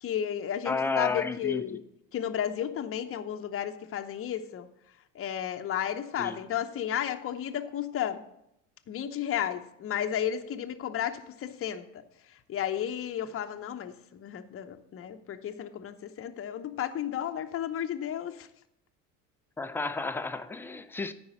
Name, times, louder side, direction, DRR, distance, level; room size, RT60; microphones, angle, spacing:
voice 1, 0.0-1.8 2.1-4.7 5.1-8.2 8.9-11.9 12.5-18.5, left 10 dB, 30° left, 0.8 m, -33 dB
voice 2, 0.7-1.8 6.2-6.4 19.6-21.1, left 4 dB, 5° left, 0.4 m, -32 dB
9.6 x 4.8 x 7.3 m
hypercardioid pair, 70°, 47 cm